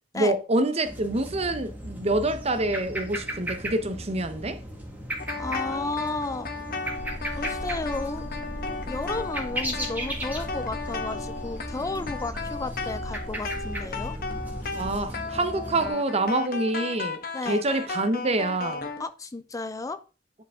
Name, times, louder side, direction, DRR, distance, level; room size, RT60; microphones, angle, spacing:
voice 1, 0.1-4.6 14.7-18.9, right 2 dB, 35° right, 0.9 m, -26 dB
sound 1, 0.8-15.9, right 1 dB, 10° right, 1.6 m, -36 dB
sound 2, 5.2-19.0, left 4 dB, 55° left, 1.2 m, -35 dB
voice 2, 5.4-6.5 7.3-8.2 8.9-14.1 17.3-17.6 19.0-20.0, left 3 dB, 20° left, 0.4 m, -33 dB
sound 3, 6.9-15.1, left 1 dB, 65° right, 3.0 m, -40 dB
9.7 x 5.0 x 3.6 m
head